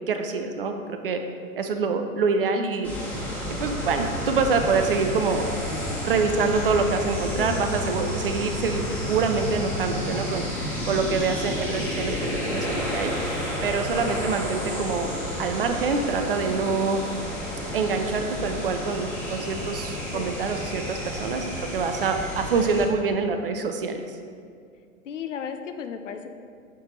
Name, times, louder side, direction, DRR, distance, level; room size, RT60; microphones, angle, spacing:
voice 1, 0.1-1.2 1.6-2.9 3.5-5.5 6.0-8.8 9.1-12.1 12.5-13.1 13.6-15.1 15.4-17.0 17.7-24.0, right 4 dB, 45° right, 6 dB, 0.4 m, -26 dB
sound 1, 2.6-2.7 3.4-3.5 3.9-9.7 10.8-13.6, left 1 dB, 85° left, 1.5 m, -47 dB
sound 2, 2.8-22.8, equal, 5° left, 1.3 m, -31 dB
voice 2, 5.9-6.3 7.4-7.8 10.7-10.8 11.6-12.0 14.0-14.5 16.4-16.8 20.1-20.4 25.0-26.3, left 7 dB, 60° left, 7 dB, 0.6 m, -36 dB
7.3 x 3.4 x 4.1 m, 2.3 s
figure-of-eight pair, 110°, 43 cm